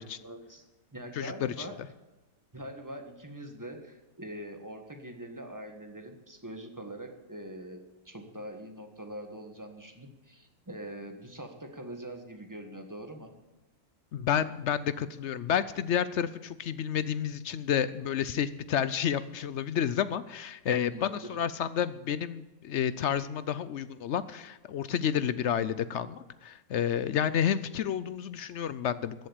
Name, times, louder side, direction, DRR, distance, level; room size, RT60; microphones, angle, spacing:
voice 1, 0.2-1.8 2.5-13.3 20.9-21.4, right 1 dB, 15° right, 4 dB, 1.5 m, -43 dB
voice 2, 1.2-1.5 14.1-29.1, left 9 dB, 65° left, 15 dB, 0.8 m, -30 dB
14.5 x 8.0 x 8.6 m, 1.1 s
omnidirectional pair, 1.5 m